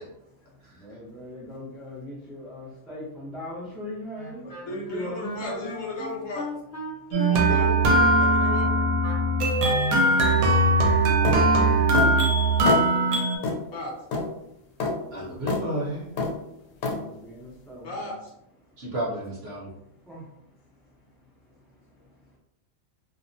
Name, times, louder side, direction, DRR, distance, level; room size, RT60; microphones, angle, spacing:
voice 1, 0.7-5.6 16.9-18.1 20.1-20.3, left 1 dB, ahead, -7 dB, 0.4 m, -39 dB
Wind instrument woodwind instrument, 4.1-9.7, left 1 dB, 45° left, 0.8 m, -38 dB
voice 2, 4.4-6.5 7.1-8.7 13.7-13.9 17.8-18.3, left 2 dB, 70° left, -1 dB, 1.0 m, -35 dB
sound 1, 7.1-13.4, right 2 dB, 80° right, 1.0 m, -20 dB
sound 2, 11.2-11.4 11.9-12.1 12.7-12.9 13.4-13.6 14.1-14.3 14.8-14.9 15.5-15.6 16.2-16.4 16.8-17.0, left 3 dB, 90° left, 1.1 m, -25 dB
voice 3, 15.1-16.1 18.8-19.7, right 1 dB, 55° right, -5 dB, 0.8 m, -31 dB
2.7 x 2.0 x 2.6 m, 0.81 s
omnidirectional pair, 1.5 m